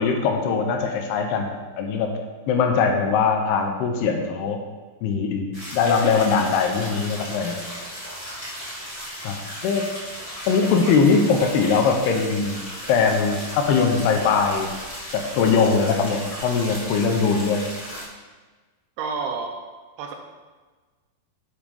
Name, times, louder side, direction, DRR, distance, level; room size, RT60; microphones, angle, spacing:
voice 1, 0.0-2.1 2.5-4.6 5.0-7.6 9.2-9.4 9.6-9.9 10.5-14.7 15.1-17.7, left 5 dB, 80° left, 3 dB, 2.7 m, -21 dB
sound 1, 5.5-18.0, equal, 60° left, 0.3 m, -36 dB
voice 2, 19.0-19.5 20.0-20.2, right 5 dB, 80° right, 3 dB, 2.4 m, -29 dB
8.7 x 5.0 x 5.4 m, 1.3 s
omnidirectional pair, 4.9 m